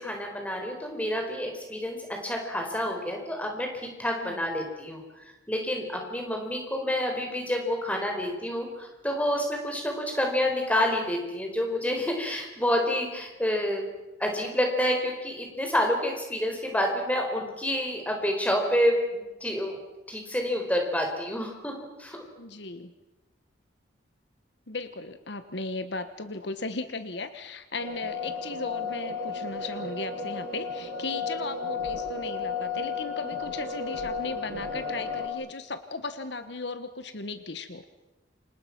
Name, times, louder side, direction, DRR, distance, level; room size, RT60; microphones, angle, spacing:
voice 1, 0.0-13.9 14.2-19.8 20.1-22.2, left 1 dB, 5° left, 2 dB, 4.7 m, -28 dB
voice 2, 22.4-22.9 24.7-37.8, left 3 dB, 65° left, 10 dB, 1.3 m, -36 dB
sound 1, 27.8-35.3, left 4 dB, 75° right, 6.6 m, -33 dB
29.0 x 26.5 x 6.1 m, 1.1 s
head